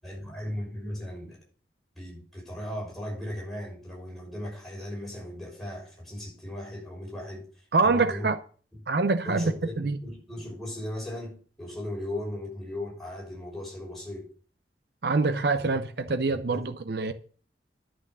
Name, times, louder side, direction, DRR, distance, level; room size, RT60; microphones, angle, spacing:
voice 1, 0.0-1.4 1.9-7.4 7.8-8.3 9.2-14.3 15.6-15.8 16.3-16.6, left 1 dB, ahead, 6.2 m, -37 dB
voice 2, 7.7-8.4 8.9-10.0 15.0-17.1, right 3 dB, 60° right, 0.6 m, -25 dB
11.0 x 6.3 x 6.7 m
head